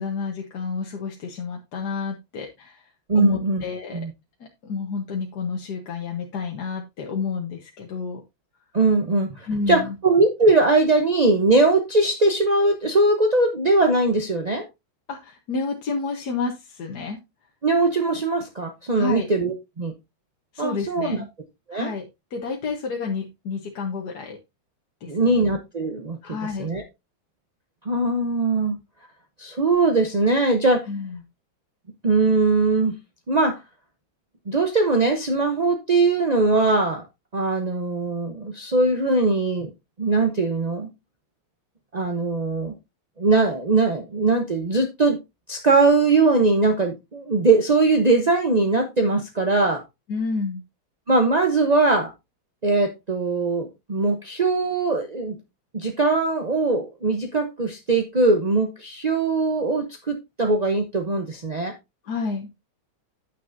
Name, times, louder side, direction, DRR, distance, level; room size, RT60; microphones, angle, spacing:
voice 1, 0.0-4.0 4.4-8.2 9.5-9.9 15.1-17.2 19.0-19.3 20.5-21.3 21.7-22.1 22.3-24.4 25.0-25.4 26.2-26.7 30.9-31.2 50.1-50.6 62.0-62.5, left 4 dB, 55° left, 1 dB, 1.6 m, -30 dB
voice 2, 3.1-3.6 3.9-4.1 8.7-14.6 17.6-19.9 20.6-21.2 21.7-21.9 25.1-26.2 26.6-26.8 27.9-28.8 29.4-30.9 32.0-32.9 33.3-33.6 34.5-37.0 37.3-39.7 40.0-40.9 41.9-42.7 43.2-45.2 45.5-49.8 51.1-52.1 52.6-55.3 55.7-61.7, right 3 dB, 40° right, 5 dB, 0.6 m, -21 dB
9.3 x 9.2 x 2.6 m, 0.22 s
omnidirectional pair, 2.2 m